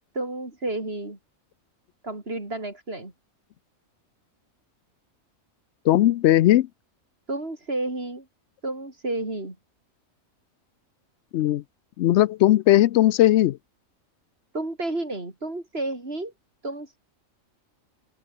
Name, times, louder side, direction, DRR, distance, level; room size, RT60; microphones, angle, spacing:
voice 1, 0.1-1.2 2.0-3.1 7.3-8.3 8.6-9.6 14.5-16.3 16.6-17.0, right 2 dB, 45° right, 5.1 m, -31 dB
voice 2, 5.8-6.7 11.3-11.6 12.0-13.6, left 14 dB, 65° left, 0.8 m, -18 dB
open air
omnidirectional pair, 1.4 m